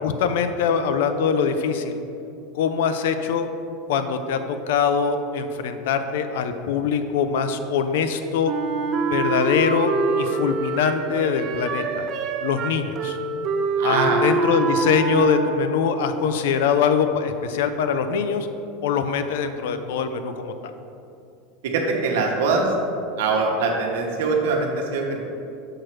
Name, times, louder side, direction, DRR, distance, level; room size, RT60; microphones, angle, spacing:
voice 1, 0.0-2.0 2.5-3.5 3.9-8.5 9.1-12.1 12.4-13.2 13.8-18.5 18.8-20.5, left 6 dB, 75° left, 9 dB, 0.4 m, -23 dB
Wind instrument woodwind instrument, 8.4-16.0, right 4 dB, 30° right, 0.4 m, -25 dB
voice 2, 13.8-14.2 21.6-22.7 23.2-25.2, right 4 dB, 75° right, 0 dB, 1.1 m, -23 dB
6.5 x 3.2 x 5.9 m, 2.7 s
supercardioid pair, 170°, 0 cm